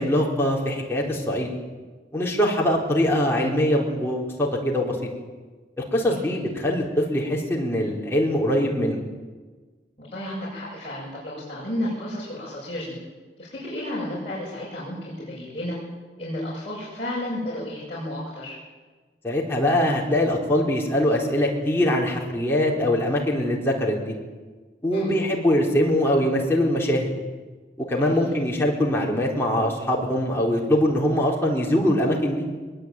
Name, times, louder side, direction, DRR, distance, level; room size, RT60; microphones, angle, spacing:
voice 1, 0.0-1.5 2.1-5.0 5.8-9.0 19.2-24.1 24.8-27.1 27.9-32.5, left 1 dB, 15° left, -3 dB, 4.4 m, -22 dB
voice 2, 6.0-6.4 10.0-13.0 13.4-15.8 16.2-18.6 24.9-25.1 28.0-28.3, left 1 dB, 30° left, -8 dB, 7.6 m, -32 dB
22.0 x 21.5 x 9.2 m, 1.4 s
head